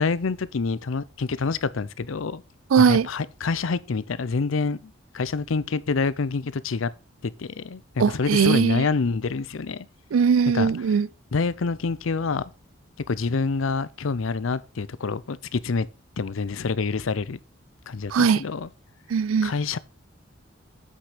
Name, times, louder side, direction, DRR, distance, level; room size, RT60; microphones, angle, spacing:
voice 1, 0.0-2.4 2.8-6.9 7.2-9.9 10.5-10.7 11.3-12.5 13.1-15.9 16.2-17.4 17.9-18.7 19.4-19.8, left 4 dB, 80° left, 0.6 m, -27 dB
voice 2, 2.7-3.1 8.0-8.8 10.1-11.1 18.1-18.4 19.1-19.5, right 6 dB, 90° right, 0.4 m, -20 dB
8.4 x 5.9 x 5.0 m
head